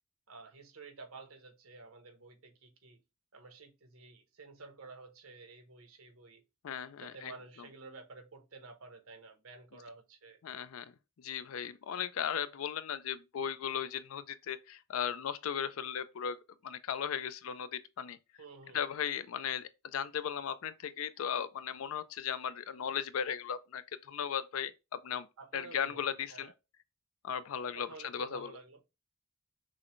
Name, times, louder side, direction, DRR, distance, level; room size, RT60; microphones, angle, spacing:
voice 1, 0.3-3.0 3.3-6.4 7.0-10.4 18.4-18.9 25.4-26.5 27.7-28.8, right 3 dB, 85° right, 1.0 m, -51 dB
voice 2, 6.6-7.3 10.4-10.9 11.2-16.4 16.6-18.2 18.7-25.3 25.5-26.5 27.2-28.5, left 8 dB, 75° left, 0.4 m, -37 dB
6.2 x 2.1 x 3.1 m
head